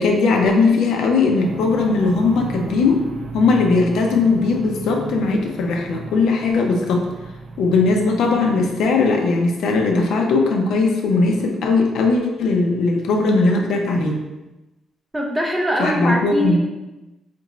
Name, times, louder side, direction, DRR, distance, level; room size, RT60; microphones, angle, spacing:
voice 1, 0.0-3.0 3.3-7.0 7.6-14.2 15.8-16.6, left 3 dB, 80° left, 1 dB, 0.6 m, -18 dB
sound 1, 1.4-9.6, right 3 dB, 75° right, 0.5 m, -35 dB
voice 2, 15.1-16.6, equal, 10° right, 0 dB, 0.4 m, -22 dB
4.4 x 2.5 x 3.0 m, 1.1 s
cardioid pair, 150°, 0 cm